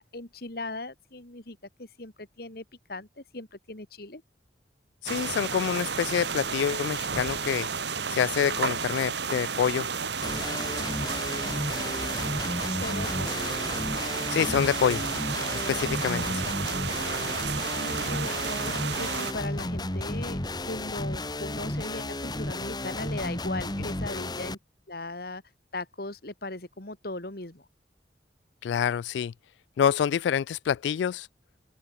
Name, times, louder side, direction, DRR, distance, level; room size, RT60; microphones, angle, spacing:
voice 1, 0.0-2.6 2.9-4.2 12.7-13.4 16.3-16.4 17.7-24.6 24.9-25.4 25.7-27.6, left 2 dB, 55° left, 2.5 m, -38 dB
voice 2, 5.0-7.7 8.1-9.9 14.3-15.0 15.7-16.5 28.6-29.3 29.8-31.3, left 8 dB, 80° left, 0.3 m, -26 dB
sound 1, 5.1-19.3, right 5 dB, 75° right, 2.8 m, -32 dB
sound 2, 10.2-24.5, left 1 dB, 25° left, 2.2 m, -33 dB
open air
head